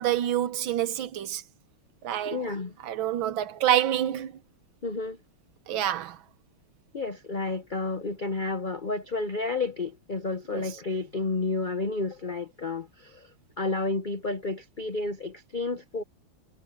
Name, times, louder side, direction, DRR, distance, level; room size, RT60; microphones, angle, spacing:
voice 1, 0.0-1.4 2.0-2.4 2.8-4.3 5.7-6.2 10.5-10.6, right 11 dB, 70° right, 1.6 m, -27 dB
voice 2, 2.2-2.7 4.8-5.2 6.9-16.0, left 3 dB, 75° left, 0.4 m, -31 dB
omnidirectional pair, 2.4 m